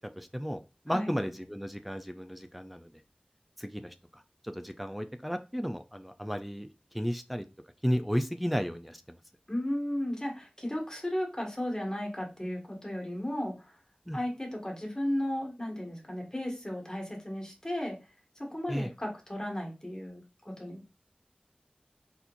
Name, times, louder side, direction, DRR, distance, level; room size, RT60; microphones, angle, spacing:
voice 1, 0.2-0.6 0.9-2.9 3.6-3.9 4.4-6.7 6.9-7.4 7.8-9.0 14.1-14.2 18.7-18.9, equal, 5° right, 7 dB, 0.6 m, -33 dB
voice 2, 9.5-13.7 14.1-18.0 18.4-20.8, left 1 dB, 25° left, 0 dB, 2.0 m, -35 dB
4.3 x 4.2 x 2.6 m, 0.29 s
wide cardioid pair, 40°, 3 cm